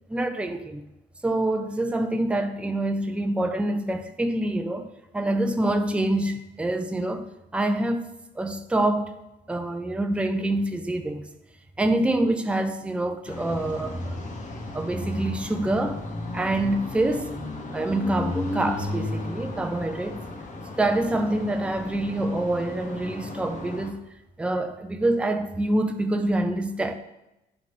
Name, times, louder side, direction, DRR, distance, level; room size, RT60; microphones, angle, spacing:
voice 1, 0.1-0.8 1.2-4.9 5.1-7.2 7.5-8.1 8.4-9.1 9.5-11.2 11.8-14.2 14.7-16.0 16.3-17.4 17.7-20.2 20.8-24.0 24.4-26.9, right 1 dB, 5° right, 0.5 m, -26 dB
sound 1, 13.3-23.9, left 2 dB, 40° left, 1.1 m, -35 dB
9.8 x 3.8 x 3.1 m
cardioid pair, 90°, 20 cm